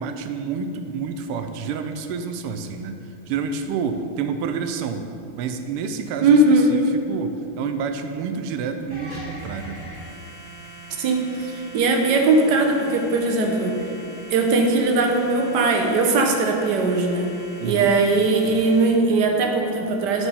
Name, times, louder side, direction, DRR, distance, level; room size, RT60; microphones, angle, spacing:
voice 1, 0.0-3.0 3.3-5.1 5.3-9.9 17.6-18.0, right 6 dB, 85° right, 7 dB, 1.5 m, -29 dB
voice 2, 6.2-6.7 11.0-13.8 14.3-17.3 17.6-20.3, right 3 dB, 65° right, 2 dB, 1.2 m, -19 dB
sound 1, 8.9-18.9, right 2 dB, 20° left, 1.9 m, -41 dB
9.7 x 4.8 x 4.1 m, 2.6 s
omnidirectional pair, 2.4 m